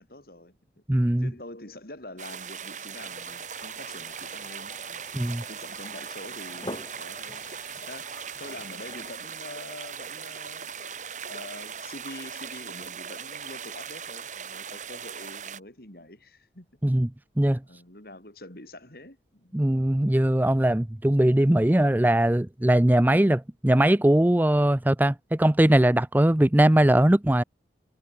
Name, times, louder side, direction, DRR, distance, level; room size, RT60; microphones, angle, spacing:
voice 1, 0.0-0.8 1.2-5.1 5.5-16.7 17.6-19.6, left 1 dB, 55° left, 5.5 m, -45 dB
voice 2, 0.9-1.3 5.1-5.4 16.8-17.1 17.4-17.6 19.5-27.4, right 1 dB, 10° right, 0.5 m, -20 dB
sound 1, 2.2-15.6, right 7 dB, 45° right, 4.7 m, -39 dB
sound 2, 3.0-9.1, left 1 dB, 25° left, 4.1 m, -46 dB
head